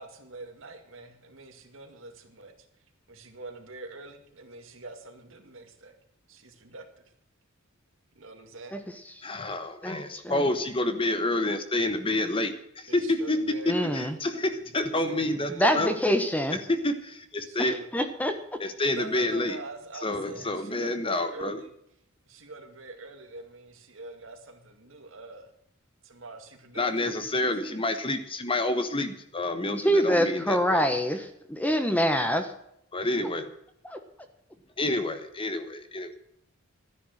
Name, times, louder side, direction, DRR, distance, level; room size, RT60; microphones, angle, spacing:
voice 1, 0.0-2.5 3.1-6.0 6.3-6.9 8.2-8.8 12.9-14.1 15.1-15.8 17.4-17.9 18.9-21.7 22.3-25.5 26.0-27.1 27.3-27.8, right 2 dB, 65° right, 2.2 m, -44 dB
voice 2, 9.2-15.9 16.7-17.8 18.6-19.6 20.0-21.6 26.8-30.9 32.9-33.5 34.8-36.2, left 2 dB, 25° left, 1.2 m, -28 dB
voice 3, 13.7-14.1 15.6-16.6 17.6-18.4 29.7-32.5 33.8-34.0, equal, 5° left, 1.2 m, -25 dB
13.0 x 10.0 x 6.5 m
head